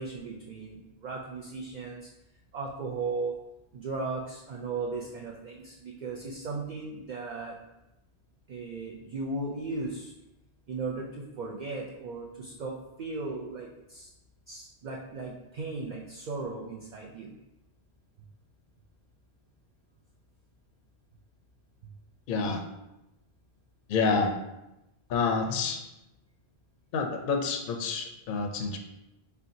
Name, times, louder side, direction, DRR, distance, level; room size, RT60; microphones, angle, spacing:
voice 1, 0.0-2.1 2.5-3.4 3.7-7.6 8.5-10.1 10.7-14.1 14.5-17.4, right 3 dB, 55° right, -1 dB, 0.6 m, -36 dB
voice 2, 22.3-22.6 23.9-24.3 25.1-25.8 26.9-28.8, left 4 dB, 60° left, 3 dB, 0.6 m, -28 dB
4.4 x 3.4 x 2.6 m, 0.93 s
omnidirectional pair, 1.1 m